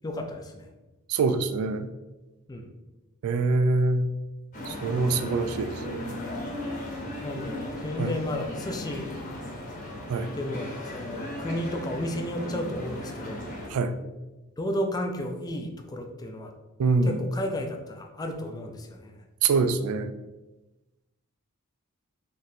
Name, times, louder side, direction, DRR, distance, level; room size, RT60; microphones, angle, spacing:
voice 1, 0.0-0.7 2.5-2.7 7.2-9.1 10.4-13.4 14.6-16.5 17.1-19.2, left 1 dB, 15° left, 3 dB, 0.3 m, -33 dB
voice 2, 1.1-1.9 3.2-4.1 4.7-6.2 8.0-8.1 10.1-10.3 13.7-13.9 16.8-17.2 19.4-20.1, right 3 dB, 70° right, 10 dB, 0.3 m, -25 dB
sound 1, 4.5-13.7, left 1 dB, 35° left, 0.8 m, -36 dB
3.0 x 2.6 x 4.1 m, 1.1 s
head